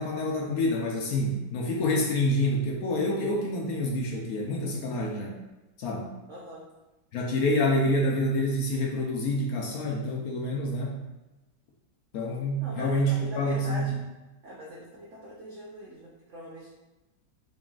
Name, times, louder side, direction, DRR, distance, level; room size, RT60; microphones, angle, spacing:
voice 1, 0.0-5.4 5.8-6.1 7.1-11.0 12.1-14.0, left 1 dB, 70° left, -1 dB, 0.9 m, -27 dB
voice 2, 6.3-6.6 12.6-13.9 14.4-16.7, equal, 70° right, -5 dB, 0.7 m, -42 dB
3.9 x 3.7 x 2.4 m, 1.0 s
omnidirectional pair, 2.0 m